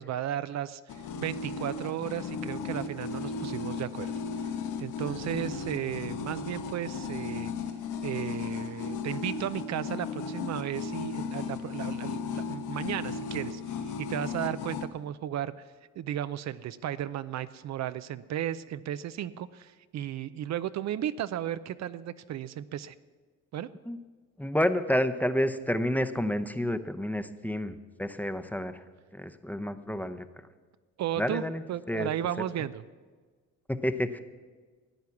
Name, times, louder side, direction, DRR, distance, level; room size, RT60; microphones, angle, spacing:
voice 1, 0.0-4.1 4.4-4.5 4.8-7.5 8.0-15.7 16.0-22.9 23.5-23.7 31.0-31.4 31.7-32.8, right 11 dB, 65° right, 14 dB, 0.5 m, -34 dB
sound 1, 0.9-14.9, left 5 dB, 85° left, 1.0 m, -35 dB
voice 2, 24.4-28.8 29.1-30.2 31.2-32.1 33.7-34.2, equal, 5° left, 10 dB, 0.7 m, -29 dB
14.0 x 9.4 x 7.1 m, 1.4 s
cardioid pair, 90°, 30 cm